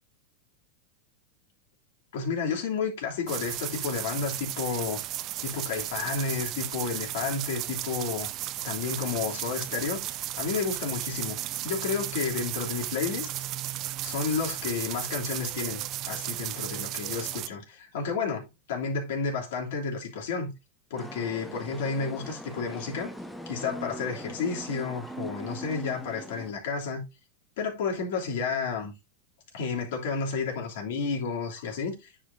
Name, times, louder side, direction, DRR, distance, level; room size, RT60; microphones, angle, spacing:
voice 1, 2.1-5.0 5.4-8.3 8.6-13.3 14.0-20.5 20.9-23.1 23.5-27.0 27.6-28.9 29.5-32.1, left 5 dB, 70° left, 3.0 m, -31 dB
sound 1, 3.3-17.5, right 14 dB, 40° right, 0.5 m, -34 dB
sound 2, 21.0-26.5, equal, ahead, 0.6 m, -41 dB
9.9 x 4.9 x 2.7 m
supercardioid pair, 140°, 0 cm